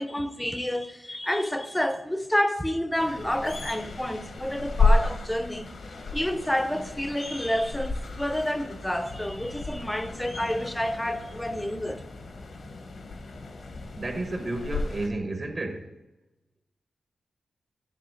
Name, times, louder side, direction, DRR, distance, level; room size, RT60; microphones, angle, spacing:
voice 1, 0.0-5.7 6.1-12.0, left 1 dB, 10° left, 0.6 m, -29 dB
sound 1, 2.9-15.1, left 3 dB, 65° left, 1.1 m, -31 dB
voice 2, 14.0-15.9, right 2 dB, 40° right, 1.0 m, -31 dB
10.0 x 3.6 x 6.4 m
wide cardioid pair, 95°, 0 cm